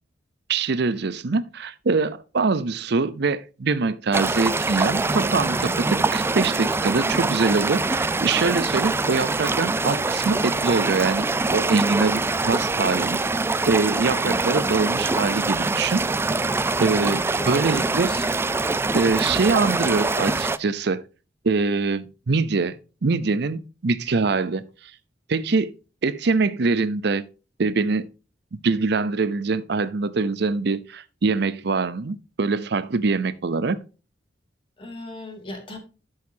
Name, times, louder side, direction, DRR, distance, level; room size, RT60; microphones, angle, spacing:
voice 1, 0.5-11.3 11.5-13.2 13.7-16.0 16.8-18.1 18.9-21.0 21.4-22.8 23.0-24.9 25.3-25.7 26.0-27.2 27.6-28.1 28.6-33.8, right 4 dB, 65° right, 0.6 m, -23 dB
sound 1, 4.1-20.6, right 3 dB, 15° right, 0.3 m, -24 dB
voice 2, 14.1-14.7 16.9-18.3 34.8-35.8, left 1 dB, 30° left, 2.6 m, -37 dB
12.5 x 6.5 x 2.7 m
head